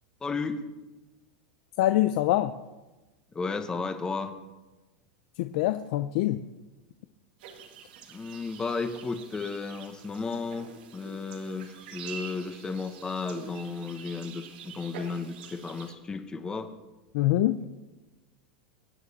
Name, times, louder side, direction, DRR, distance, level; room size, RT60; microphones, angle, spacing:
voice 1, 0.2-0.6 3.3-4.4 8.1-16.7, left 4 dB, 15° left, 8 dB, 1.1 m, -34 dB
voice 2, 1.8-2.5 5.4-6.4 17.1-17.6, left 14 dB, 60° left, 10 dB, 0.6 m, -24 dB
sound 1, 7.4-15.9, right 7 dB, 70° right, 1.9 m, -46 dB
23.5 x 9.1 x 4.2 m, 1.1 s
supercardioid pair, 140°, 5 cm